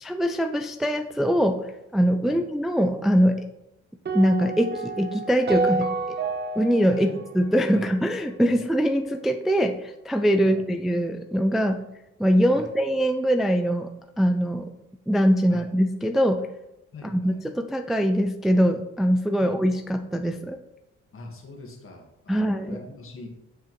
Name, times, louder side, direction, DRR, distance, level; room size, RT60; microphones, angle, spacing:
voice 1, 0.0-3.4 4.1-6.2 6.6-7.1 7.3-11.8 12.2-13.9 14.2-14.7 15.1-16.5 17.0-20.6 22.3-22.8, equal, ahead, 6 dB, 0.4 m, -23 dB
sound 1, 4.0-8.3, right 4 dB, 35° right, 1.1 m, -29 dB
voice 2, 16.9-17.4 19.4-19.5 21.1-23.3, left 2 dB, 45° left, 1 dB, 1.8 m, -42 dB
7.2 x 6.6 x 3.2 m, 0.91 s
cardioid pair, 90°, 30 cm